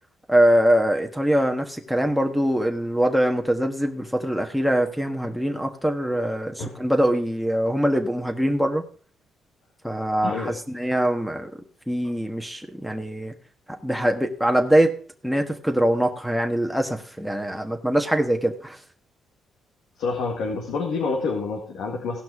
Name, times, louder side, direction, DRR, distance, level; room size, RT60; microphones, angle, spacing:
voice 1, 0.3-8.8 9.8-11.6 11.9-13.3 13.8-14.9 15.2-18.8, right 1 dB, ahead, 6 dB, 1.4 m, -23 dB
voice 2, 10.2-10.6 20.0-22.2, left 4 dB, 85° left, 0 dB, 1.9 m, -27 dB
16.5 x 5.9 x 4.8 m, 0.43 s
cardioid pair, 90°, 0 cm